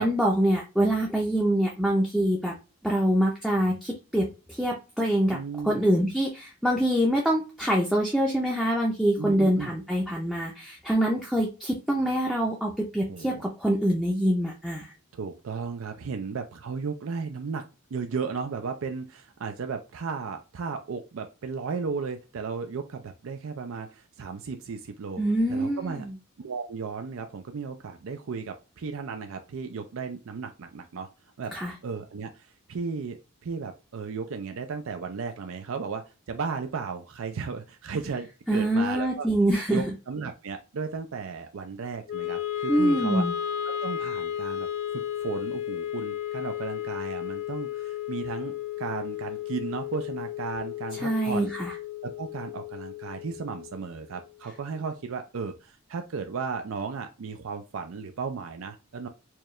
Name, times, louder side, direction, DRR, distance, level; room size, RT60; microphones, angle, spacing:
voice 1, 0.0-2.5 2.8-5.4 5.6-14.9 25.2-26.1 31.5-31.7 38.5-39.8 42.7-43.3 51.0-51.7, right 1 dB, ahead, -2 dB, 0.5 m, -25 dB
voice 2, 5.3-5.9 9.2-9.7 13.1-13.4 15.1-17.6 17.9-25.2 25.5-26.0 26.4-31.1 31.4-39.3 39.7-43.2 43.6-44.7 44.9-51.5 52.0-59.1, right 5 dB, 70° right, 6 dB, 0.4 m, -35 dB
Wind instrument woodwind instrument, 42.1-54.3, left 10 dB, 70° left, 0.5 m, -34 dB
4.5 x 2.3 x 3.1 m, 0.30 s
head